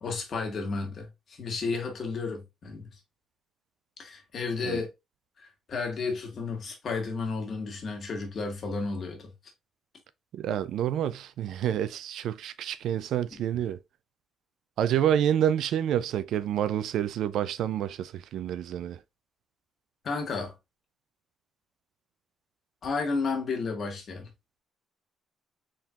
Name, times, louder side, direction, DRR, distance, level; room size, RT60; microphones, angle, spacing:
voice 1, 0.0-2.9 4.0-4.9 5.4-9.3 20.0-20.5 22.8-24.3, left 4 dB, 55° left, 1.5 m, -32 dB
voice 2, 10.3-13.8 14.8-19.0, right 10 dB, 80° right, 0.4 m, -28 dB
4.4 x 3.7 x 2.4 m
cardioid pair, 90°, 0 cm